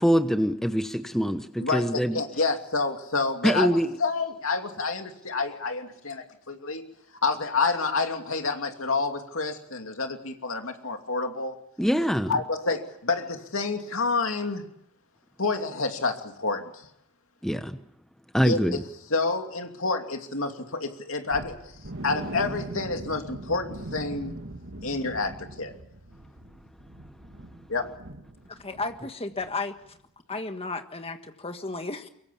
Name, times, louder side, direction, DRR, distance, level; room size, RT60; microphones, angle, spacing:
voice 1, 0.0-2.2 3.4-3.9 11.8-12.4 17.4-17.8 18.3-18.8, equal, ahead, 8 dB, 1.0 m, -24 dB
voice 2, 1.6-3.7 4.0-6.8 7.2-11.5 12.3-14.6 15.4-16.7 18.4-18.8 19.1-21.6 22.0-24.3 24.8-25.7 27.7-27.9, left 3 dB, 60° left, 5 dB, 2.7 m, -28 dB
sound 1, 21.3-29.1 29.3-29.5 29.9-30.0, right 1 dB, 55° right, 2.7 m, -40 dB
voice 3, 28.5-30.0 30.3-32.1, left 3 dB, 25° left, 7 dB, 1.6 m, -34 dB
24.0 x 23.0 x 7.2 m, 0.77 s
head